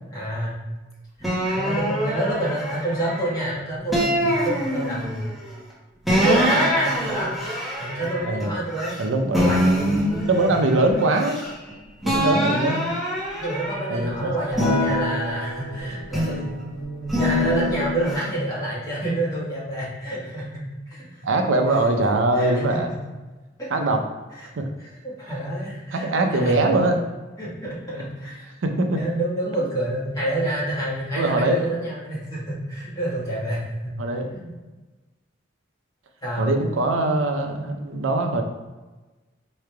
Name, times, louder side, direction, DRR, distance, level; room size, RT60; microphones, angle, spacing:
voice 1, 0.1-0.6 1.2-5.3 6.1-7.3 7.8-8.9 9.3-9.8 10.5-10.6 12.2-12.4 13.4-20.6 20.9-21.2 21.7-21.9 22.3-22.8 23.6-23.7 24.3-24.5 24.8-26.6 27.4-28.5 28.9-34.0 34.3-34.5 36.2-36.5, right 1 dB, 20° left, -8 dB, 1.3 m, -28 dB
sound 1, 1.2-3.4 3.9-5.3 6.1-9.0 9.3-11.7 12.0-14.0 14.5-16.5 17.1-18.2, equal, ahead, 0.7 m, -24 dB
voice 2, 9.0-9.5 10.2-11.4 12.0-12.8 13.9-14.8 21.2-22.9 23.7-24.0 24.6-24.7 25.9-27.0 28.6-29.0 31.1-31.6 34.0-34.3 36.4-38.4, right 2 dB, 85° right, 4 dB, 0.5 m, -22 dB
4.7 x 3.2 x 2.2 m, 1.2 s
head